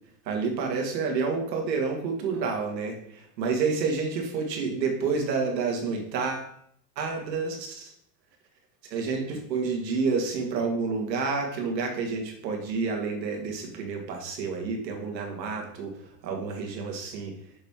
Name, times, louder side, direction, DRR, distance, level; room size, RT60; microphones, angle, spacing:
voice 1, 0.2-6.5 6.9-7.9 8.9-15.9 16.2-17.3, right 4 dB, 90° right, 2 dB, 1.8 m, -29 dB
6.6 x 4.3 x 3.7 m, 0.68 s
supercardioid pair, 140°, 49 cm